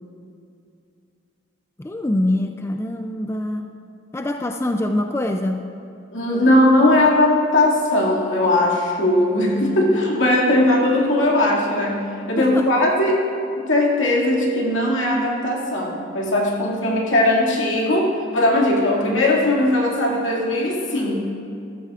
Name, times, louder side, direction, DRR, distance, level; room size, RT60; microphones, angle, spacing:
voice 1, 1.8-3.7 4.1-5.6 12.4-12.7, left 1 dB, 15° left, 5 dB, 0.3 m, -24 dB
voice 2, 6.1-12.0 12.3-13.2 13.7-21.2, left 1 dB, 90° left, -3 dB, 2.2 m, -19 dB
14.5 x 13.5 x 2.5 m, 2.6 s
head